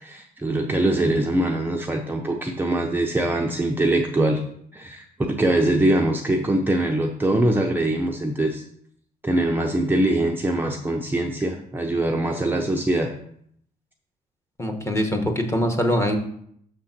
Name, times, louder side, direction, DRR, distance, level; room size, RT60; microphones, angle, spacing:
voice 1, 0.0-4.4 4.7-8.6 9.2-13.1, right 1 dB, 10° right, 1 dB, 0.6 m, -23 dB
voice 2, 14.6-16.2, equal, 15° left, 4 dB, 1.1 m, -23 dB
6.6 x 3.8 x 5.9 m, 0.68 s
cardioid pair, 110°, 17 cm